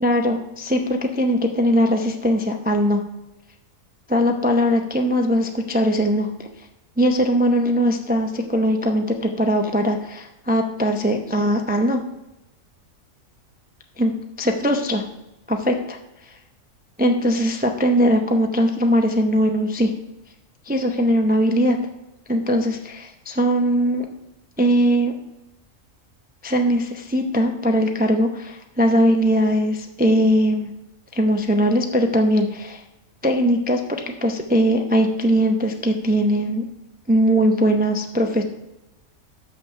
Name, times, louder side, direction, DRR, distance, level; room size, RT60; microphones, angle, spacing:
voice 1, 0.0-3.0 4.1-6.5 7.0-12.0 14.0-15.0 15.5-15.7 17.0-19.9 20.7-21.8 22.3-24.1 24.6-25.1 26.4-30.7 31.1-32.8 33.2-36.7 37.1-38.4, equal, 15° right, 4 dB, 0.3 m, -20 dB
6.2 x 5.9 x 6.6 m, 0.92 s
omnidirectional pair, 1.4 m